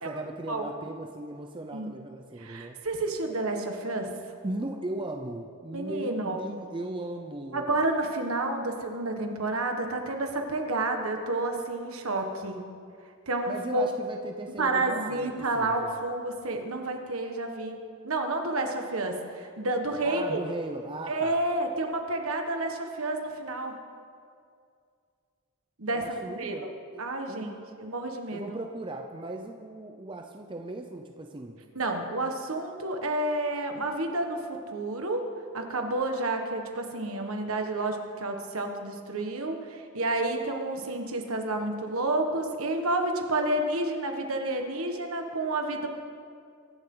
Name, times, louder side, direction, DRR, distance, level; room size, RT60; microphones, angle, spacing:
voice 1, 0.0-2.8 4.4-7.8 13.5-16.1 20.0-21.4 25.9-27.7 28.3-31.6, right 2 dB, 20° right, 3 dB, 0.6 m, -38 dB
voice 2, 2.4-4.1 5.7-6.4 7.5-12.6 13.3-13.9 14.6-17.8 18.0-20.4 21.1-23.8 25.8-26.7 27.0-27.5 27.8-28.6 31.7-35.3 35.5-45.9, right 2 dB, 65° right, 4 dB, 1.5 m, -30 dB
23.5 x 11.0 x 3.9 m, 2.3 s
head